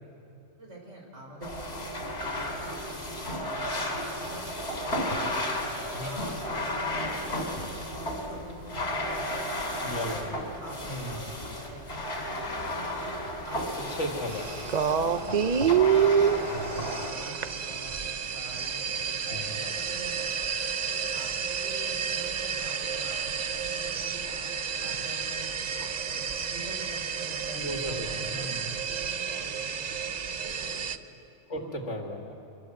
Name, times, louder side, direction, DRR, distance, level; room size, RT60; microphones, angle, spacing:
voice 1, 0.6-5.6 6.0-9.4 9.7-13.1 13.4-14.1 14.5-16.4 16.7-18.0 18.3-20.5 20.9-24.5 24.8-30.1 30.4-31.0 31.5-31.7, right 1 dB, 80° right, -1 dB, 5.4 m, -46 dB
sound 1, 1.4-17.1, left 1 dB, 55° left, 3.6 m, -33 dB
voice 2, 9.8-10.3 10.9-11.3 13.8-14.6 19.3-19.6 27.5-28.7 31.5-32.3, equal, 75° left, 2 dB, 2.5 m, -36 dB
sound 2, 14.3-31.0, right 7 dB, 45° right, 0.7 m, -29 dB
24.5 x 24.0 x 7.8 m, 2.7 s
omnidirectional pair, 1.3 m